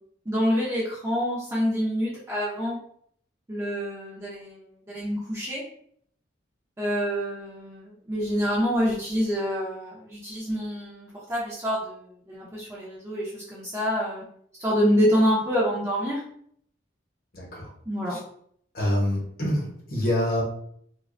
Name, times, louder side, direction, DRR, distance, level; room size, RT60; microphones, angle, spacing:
voice 1, 0.3-2.8 3.5-5.7 6.8-14.2 14.6-16.2 17.9-18.2, equal, 15° right, -6 dB, 0.5 m, -27 dB
voice 2, 17.3-17.7 18.1-18.2 18.7-20.4, left 1 dB, 50° left, -2 dB, 0.9 m, -26 dB
2.4 x 2.2 x 2.4 m, 0.64 s
head